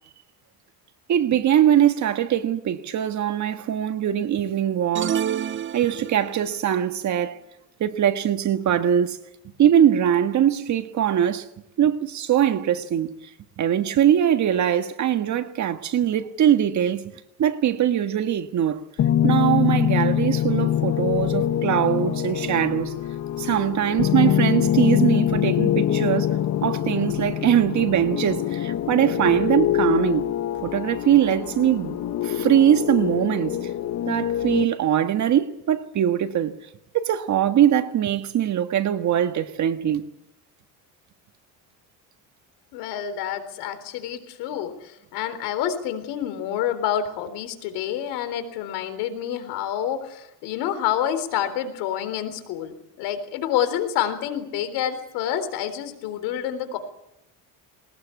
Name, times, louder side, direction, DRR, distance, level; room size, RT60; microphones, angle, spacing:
voice 1, 1.1-5.2 5.7-7.4 7.8-9.2 9.6-11.5 11.8-13.2 13.6-17.0 17.4-18.8 19.2-23.0 23.4-26.4 26.6-30.3 30.6-32.0 32.2-33.7 34.0-36.5 36.9-40.1, right 10 dB, 45° right, 1.7 m, -22 dB
sound 1, 4.9-6.5, right 9 dB, 30° right, 0.7 m, -28 dB
sound 2, 19.0-34.6, left 11 dB, 45° left, 1.1 m, -24 dB
voice 2, 42.7-56.8, left 10 dB, 85° left, 3.9 m, -28 dB
20.5 x 19.5 x 8.5 m
cardioid pair, 115°, 39 cm